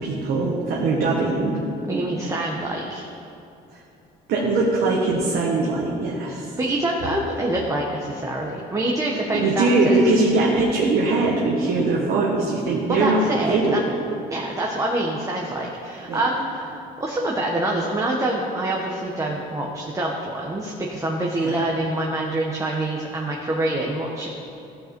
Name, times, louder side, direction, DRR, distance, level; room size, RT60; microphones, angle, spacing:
voice 1, 0.0-1.6 4.3-6.5 9.3-13.8 16.1-16.2 21.4-21.6, right 3 dB, 65° right, -3 dB, 1.3 m, -21 dB
voice 2, 1.9-3.0 6.6-10.0 12.9-13.8 14.3-24.3, right 1 dB, 20° right, -1 dB, 1.0 m, -26 dB
14.5 x 5.6 x 4.5 m, 2.8 s
cardioid pair, 110°, 17 cm